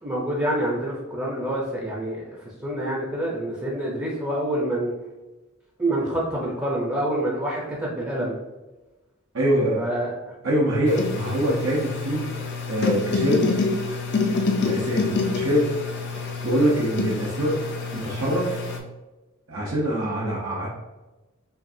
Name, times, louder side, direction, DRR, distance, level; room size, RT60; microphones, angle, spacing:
voice 1, 0.0-4.9 5.8-8.4 9.8-10.3, right 1 dB, 15° right, -4 dB, 0.6 m, -27 dB
voice 2, 9.3-9.9 10.4-12.3 12.7-13.5 14.6-15.7 16.4-17.6 17.9-18.6 19.5-20.7, right 1 dB, 70° right, -5 dB, 0.8 m, -24 dB
sound 1, 10.9-18.8, left 4 dB, 55° left, 0.6 m, -27 dB
5.7 x 2.4 x 2.7 m, 1.1 s
head